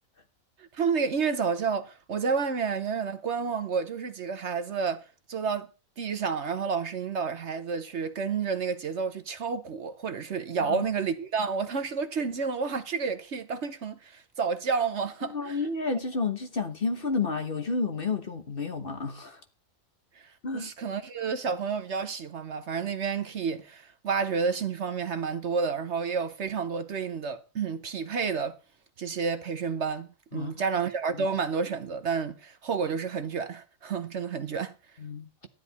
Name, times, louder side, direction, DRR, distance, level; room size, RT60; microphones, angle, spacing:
voice 1, 0.6-5.7 6.0-15.6 20.2-28.6 29.0-34.7, right 5 dB, 55° right, 1.1 m, -30 dB
voice 2, 15.2-19.4 20.4-20.7 30.3-30.7 31.1-31.3 35.0-35.3, left 4 dB, 40° left, 1.3 m, -31 dB
12.5 x 10.5 x 4.1 m
omnidirectional pair, 1.5 m